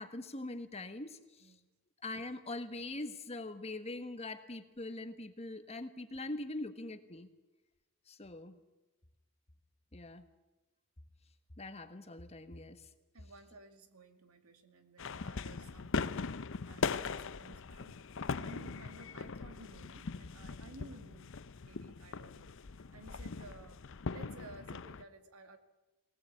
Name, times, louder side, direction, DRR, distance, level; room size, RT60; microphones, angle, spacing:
voice 1, 0.0-1.5 2.0-7.3 8.1-8.6 9.9-10.2 11.6-12.9, left 2 dB, 30° left, 9 dB, 1.3 m, -43 dB
voice 2, 13.1-16.2 16.7-18.0 18.3-21.3 21.6-22.5 22.9-25.6, right 2 dB, 75° right, 8 dB, 2.2 m, -55 dB
sound 1, 15.0-25.0, left 4 dB, 60° left, 0.6 m, -40 dB
21.0 x 18.5 x 8.4 m, 1.1 s
head